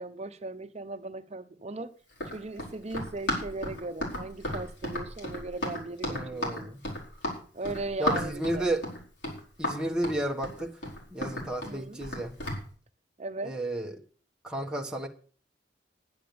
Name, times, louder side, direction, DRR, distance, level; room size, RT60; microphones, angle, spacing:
voice 1, 0.0-1.9 2.3-6.8 7.5-8.7 11.6-12.0 13.2-13.6, right 2 dB, 35° right, 1.0 m, -38 dB
Run, 2.1-12.6, left 1 dB, 75° left, 4.7 m, -34 dB
voice 2, 6.1-6.8 8.0-8.8 9.6-10.8 11.1-12.3 13.4-14.0 14.4-15.1, right 1 dB, 5° right, 1.3 m, -32 dB
10.5 x 9.9 x 6.9 m
head